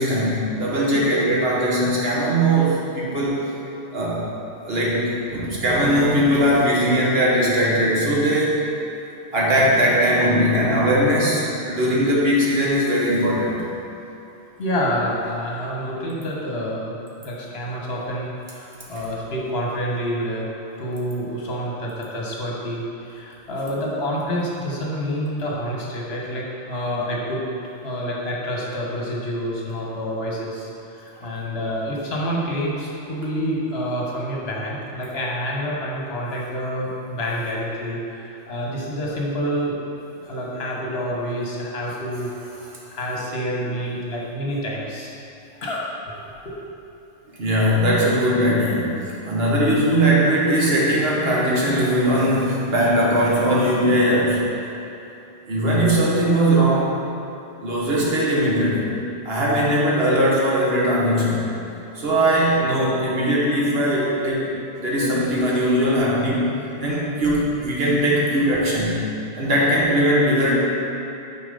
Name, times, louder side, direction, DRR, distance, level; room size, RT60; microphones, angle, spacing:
voice 1, 0.0-3.4 3.9-4.3 4.6-8.6 9.3-13.6 47.4-49.0 49.3-54.5 55.5-56.9 57.6-58.9 59.2-61.5 61.9-64.5 64.8-66.5 66.8-69.1 69.3-70.5, equal, 60° right, -5 dB, 1.6 m, -20 dB
voice 2, 14.6-17.0 17.2-20.5 20.8-27.4 27.8-39.7 40.2-45.1 45.6-45.9 46.4-46.8, equal, 60° left, -4 dB, 1.4 m, -28 dB
6.8 x 4.6 x 5.3 m, 2.9 s
omnidirectional pair, 1.2 m